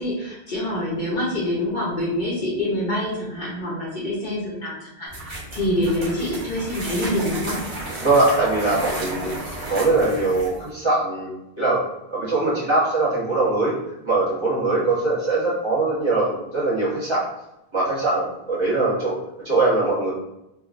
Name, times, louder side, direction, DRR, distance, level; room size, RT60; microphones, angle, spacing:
voice 1, 0.0-7.6, left 1 dB, 55° left, -5 dB, 0.8 m, -26 dB
sound 1, 5.1-10.7, right 1 dB, 85° right, 1.3 m, -33 dB
voice 2, 8.0-9.3 9.7-11.8 12.1-13.7 14.0-17.2 17.7-19.2 19.4-20.1, right 2 dB, 25° right, -9 dB, 1.1 m, -21 dB
3.4 x 2.3 x 2.4 m, 0.88 s
omnidirectional pair, 1.1 m